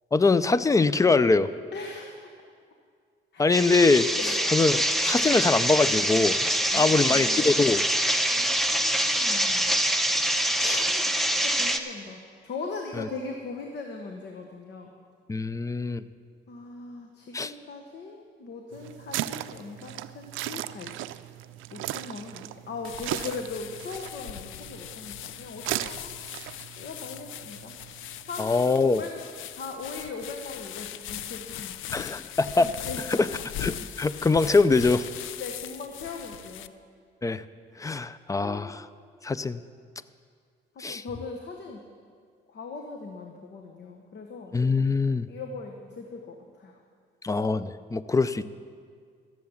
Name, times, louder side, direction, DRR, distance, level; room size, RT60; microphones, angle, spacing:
voice 1, 0.1-1.5 3.4-4.1 4.5-7.8 10.6-10.8 13.0-13.1 15.3-16.0 17.3-17.5 28.4-29.0 31.9-32.7 33.2-33.3 33.6-35.0 37.2-37.4 37.8-38.8 39.2-39.6 40.8-41.0 44.5-45.3 47.2-48.5, left 3 dB, 15° left, 15 dB, 0.4 m, -23 dB
voice 2, 1.7-2.3 3.3-3.7 4.2-4.4 6.7-7.7 8.3-9.8 10.7-14.9 16.5-21.2 21.7-26.2 26.8-27.7 28.2-31.8 32.6-33.3 35.4-36.8 38.4-38.8 40.7-41.9 42.5-44.6 45.3-46.8, left 4 dB, 60° left, 3 dB, 1.2 m, -40 dB
sound 1, 3.5-11.8, right 1 dB, ahead, 0.8 m, -25 dB
sound 2, 18.7-28.4, right 14 dB, 80° right, 0.4 m, -37 dB
sound 3, 22.8-36.7, left 12 dB, 80° left, 0.5 m, -40 dB
14.0 x 7.7 x 7.1 m, 2.1 s
cardioid pair, 90°, 20 cm